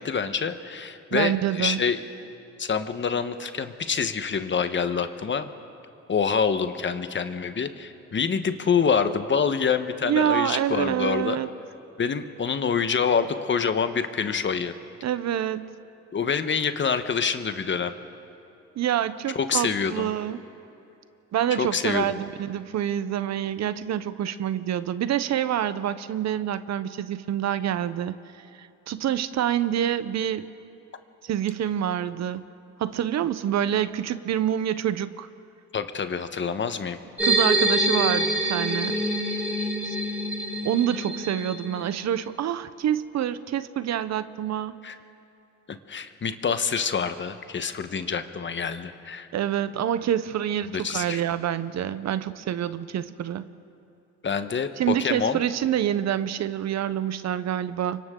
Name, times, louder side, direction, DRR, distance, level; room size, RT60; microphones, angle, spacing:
voice 1, 0.0-2.0 2.6-5.5 6.1-11.4 12.0-14.7 16.1-17.9 19.3-20.1 21.6-22.2 35.7-37.0 44.8-45.0 45.9-49.3 50.7-51.2 54.2-55.4, left 6 dB, 40° left, 10 dB, 1.1 m, -26 dB
voice 2, 1.1-1.8 10.0-11.5 15.0-15.7 18.8-20.4 21.3-28.1 28.6-30.5 31.2-32.4 32.8-35.3 37.2-39.0 39.8-40.0 40.6-44.8 49.3-53.5 54.8-58.0, right 10 dB, 60° right, 14 dB, 0.8 m, -27 dB
sound 1, 37.2-41.9, right 1 dB, 5° right, 5.6 m, -26 dB
29.0 x 24.5 x 3.8 m, 2.8 s
cardioid pair, 90°, 30 cm